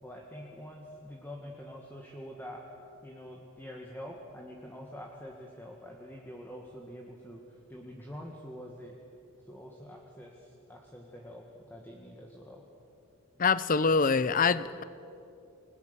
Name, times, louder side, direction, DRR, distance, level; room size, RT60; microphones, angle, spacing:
voice 1, 0.0-2.6 3.0-7.4 7.7-9.0 9.5-12.6, equal, 10° left, -1 dB, 1.8 m, -46 dB
voice 2, 13.4-14.8, left 5 dB, 40° left, 16 dB, 0.6 m, -25 dB
29.0 x 20.5 x 6.9 m, 2.7 s
head